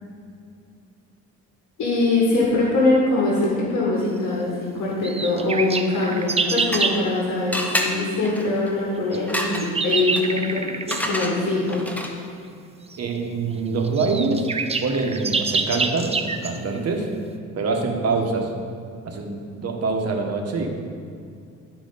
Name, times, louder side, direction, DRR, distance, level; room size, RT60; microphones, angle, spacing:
voice 1, 1.8-11.8, left 2 dB, 70° left, -4 dB, 1.9 m, -22 dB
sound 1, 5.0-7.0 9.1-11.1 12.9-13.0 13.6-13.7 13.8-16.6, right 4 dB, 20° right, 0.5 m, -26 dB
sound 2, 6.2-7.1 7.5-12.4, left 1 dB, 5° left, 0.8 m, -30 dB
voice 2, 13.0-14.5 14.8-17.1 17.6-18.5 19.0-20.7, right 4 dB, 55° right, 2 dB, 1.3 m, -25 dB
12.0 x 4.8 x 4.0 m, 2.4 s
cardioid pair, 90°, 30 cm